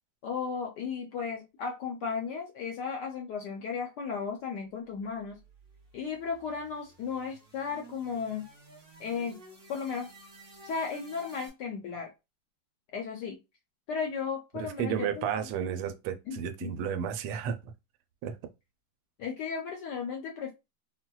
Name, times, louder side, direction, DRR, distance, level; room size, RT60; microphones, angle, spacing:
voice 1, 0.2-5.4 5.9-8.4 9.0-9.4 9.7-10.1 10.6-12.1 12.9-13.4 13.9-15.3 16.3-16.7 19.2-20.5, left 6 dB, 70° left, 1.0 m, -35 dB
sound 1, 5.1-11.5, right 2 dB, 35° right, 1.0 m, -54 dB
voice 2, 14.5-17.7 18.2-18.3, right 8 dB, 90° right, 1.5 m, -32 dB
4.4 x 2.1 x 2.3 m
omnidirectional pair, 2.3 m